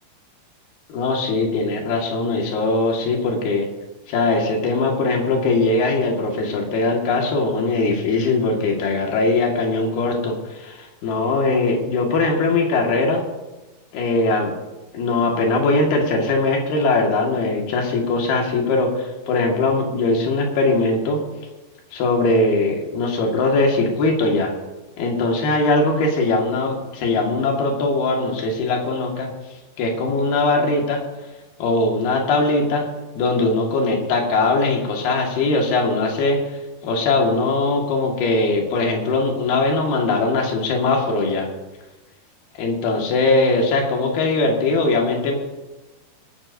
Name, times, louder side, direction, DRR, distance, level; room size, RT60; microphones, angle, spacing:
voice 1, 0.9-3.7 4.1-13.2 13.9-14.5 14.9-21.2 21.9-24.5 25.0-29.3 29.8-31.0 31.6-32.9 33.2-36.4 36.8-41.5 42.6-45.4, left 3 dB, 80° left, 0 dB, 3.8 m, -20 dB
24.5 x 12.0 x 2.7 m, 1.1 s
omnidirectional pair, 4.4 m